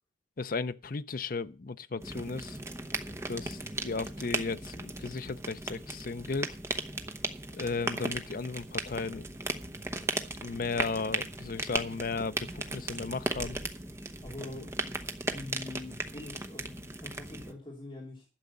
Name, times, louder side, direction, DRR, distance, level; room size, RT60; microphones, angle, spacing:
voice 1, 0.4-2.6 3.3-6.6 7.5-9.3 10.4-13.6, left 4 dB, 45° left, 0.5 m, -35 dB
sound 1, 2.0-17.5, right 2 dB, 15° right, 0.9 m, -37 dB
voice 2, 14.2-15.0 15.3-18.2, left 2 dB, 25° left, 2.9 m, -44 dB
12.0 x 6.6 x 8.5 m
head